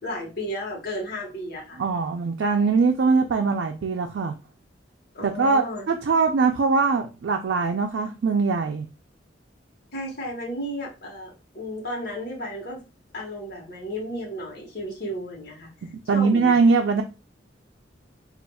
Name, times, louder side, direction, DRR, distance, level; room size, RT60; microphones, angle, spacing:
voice 1, 0.0-1.8 5.1-5.9 9.9-12.8 13.1-15.7 16.1-16.5, equal, 55° left, 1.1 m, -33 dB
voice 2, 1.8-4.4 5.2-8.9 16.1-17.0, right 4 dB, 85° right, 0.4 m, -22 dB
4.1 x 2.4 x 2.2 m
head